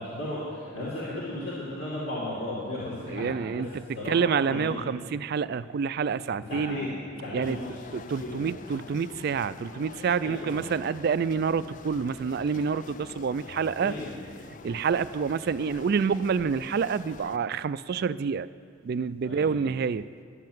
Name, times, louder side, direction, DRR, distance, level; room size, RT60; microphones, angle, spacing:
voice 1, 0.0-3.6 3.9-4.9 6.5-7.8 8.2-8.4 10.2-10.7 13.4-14.2 19.2-19.6, left 1 dB, 60° left, -8 dB, 2.7 m, -35 dB
voice 2, 3.1-3.7 4.1-6.8 7.3-7.6 7.9-13.9 14.6-18.5 18.8-20.0, right 6 dB, 50° right, 15 dB, 0.3 m, -28 dB
sound 1, 7.4-17.4, left 4 dB, 40° left, 0.3 m, -46 dB
11.5 x 7.7 x 9.1 m, 2.1 s
head